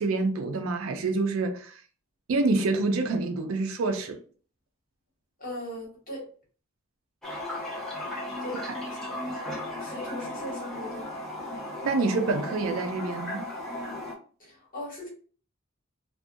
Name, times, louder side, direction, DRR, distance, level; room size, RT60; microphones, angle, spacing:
voice 1, 0.0-1.8 2.3-4.2 8.7-8.8 11.8-13.5, right 3 dB, 70° right, 0.4 m, -27 dB
voice 2, 5.4-6.3 8.4-8.6 9.8-11.1 14.4-15.1, equal, 40° left, 1.3 m, -38 dB
Toilet flush, 7.2-14.1, left 1 dB, ahead, 0.6 m, -35 dB
2.4 x 2.3 x 2.6 m
head